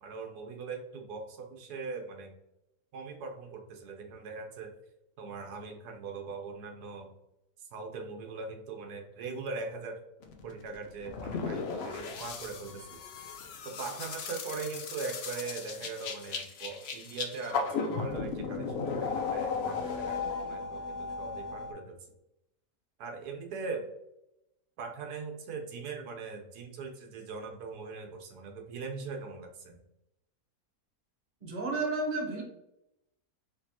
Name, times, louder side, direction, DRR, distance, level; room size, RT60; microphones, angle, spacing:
voice 1, 0.0-2.3 2.9-4.7 5.2-7.1 7.7-10.0 10.4-13.0 13.6-18.7 19.0-20.2 20.5-22.0 23.0-23.8 24.8-29.8, right 4 dB, 90° right, 2 dB, 1.3 m, -40 dB
sound 1, 10.2-21.7, left 5 dB, 65° left, 0.6 m, -36 dB
voice 2, 31.4-32.4, right 3 dB, 40° right, -1 dB, 1.2 m, -32 dB
4.4 x 3.2 x 2.8 m, 0.84 s
omnidirectional pair, 1.6 m